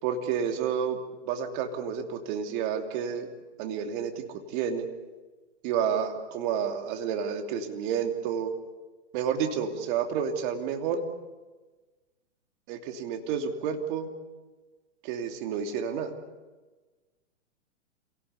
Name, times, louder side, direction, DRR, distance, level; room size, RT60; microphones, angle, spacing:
voice 1, 0.0-1.0 1.2-3.3 3.6-4.8 5.6-8.5 9.1-11.0 12.7-14.1 15.0-16.1, right 7 dB, 40° right, 5 dB, 2.9 m, -30 dB
27.5 x 18.0 x 8.2 m, 1.3 s
hypercardioid pair, 120°, 37 cm